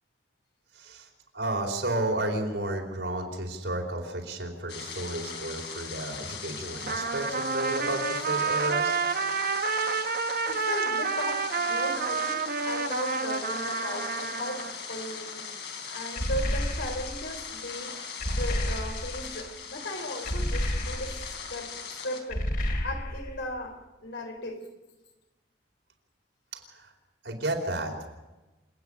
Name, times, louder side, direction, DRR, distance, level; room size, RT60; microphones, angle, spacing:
voice 1, 0.8-1.1 1.3-9.0 26.5-26.9 27.2-28.1, right 1 dB, 80° right, 4.4 m, -32 dB
sound 1, 4.7-22.2, left 6 dB, 75° left, 3.7 m, -40 dB
Trumpet, 6.9-14.7, right 5 dB, 55° right, 0.9 m, -29 dB
voice 2, 10.4-15.5 15.8-18.0 18.4-24.7, left 1 dB, 90° left, 3.8 m, -37 dB
sound 2, 16.2-17.2 18.2-19.3 20.3-21.3 22.3-23.4, equal, 50° left, 2.7 m, -30 dB
27.5 x 9.7 x 9.9 m
head